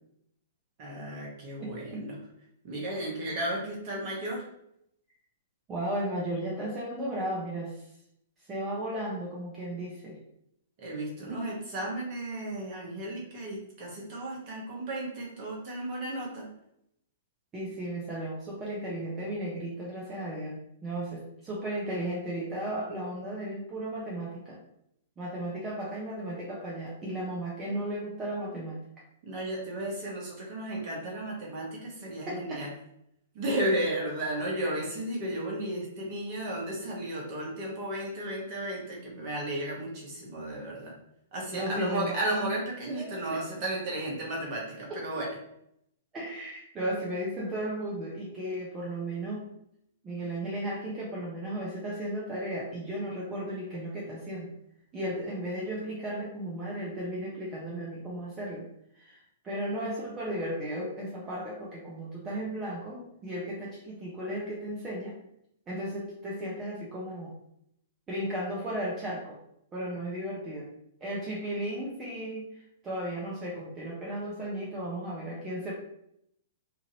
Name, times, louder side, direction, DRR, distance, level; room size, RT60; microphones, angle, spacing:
voice 1, 0.8-2.2 2.6-4.4 10.8-16.5 29.2-32.7 33.3-40.9 41.3-45.4, right 1 dB, 45° right, -3 dB, 1.2 m, -34 dB
voice 2, 1.6-2.1 3.0-3.1 5.7-7.9 8.4-10.2 11.3-11.4 17.5-24.6 25.2-28.8 32.2-32.6 33.8-33.9 34.5-34.7 41.5-42.1 42.9-43.4 44.9-45.0 46.1-49.5 50.0-54.5 54.9-58.6 58.9-65.2 65.7-67.3 68.1-69.4 69.7-70.7 71.0-75.7, right 1 dB, 20° right, -5 dB, 0.7 m, -35 dB
2.9 x 2.6 x 2.9 m, 0.76 s
figure-of-eight pair, 110°, 0 cm